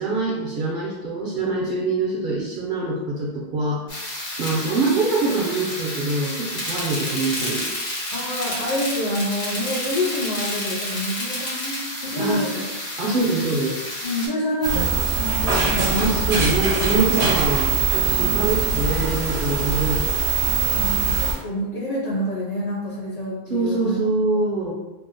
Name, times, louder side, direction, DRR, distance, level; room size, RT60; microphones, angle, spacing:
voice 1, 0.0-3.8 4.4-7.6 12.2-12.4 13.0-13.9 15.5-20.0 23.5-24.7, right 3 dB, 60° right, -3 dB, 0.6 m, -24 dB
sound 1, 3.9-14.3, left 1 dB, 75° left, 1.2 m, -30 dB
voice 2, 8.1-12.5 14.0-16.3 18.1-18.8 20.4-24.0, equal, 50° left, -7 dB, 0.5 m, -28 dB
sound 2, 14.6-21.3, right 4 dB, 85° right, 0.9 m, -22 dB
2.7 x 2.0 x 2.5 m, 1.0 s
omnidirectional pair, 1.1 m